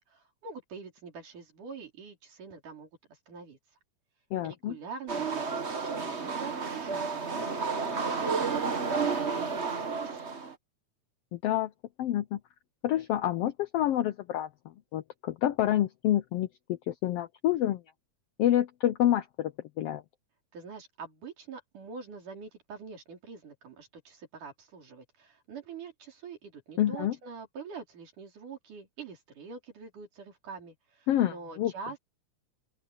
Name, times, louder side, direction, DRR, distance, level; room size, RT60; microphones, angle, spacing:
voice 1, 0.0-3.6 4.4-10.3 20.5-32.0, right 5 dB, 90° right, 6.0 m, -45 dB
voice 2, 4.3-4.7 11.3-11.7 12.0-12.4 12.8-14.5 14.9-17.8 18.4-19.5 19.8-20.0 26.8-27.2 31.1-31.7, left 12 dB, 80° left, 1.3 m, -28 dB
sound 1, 5.1-10.5, right 5 dB, 35° right, 1.1 m, -31 dB
open air
omnidirectional pair, 3.5 m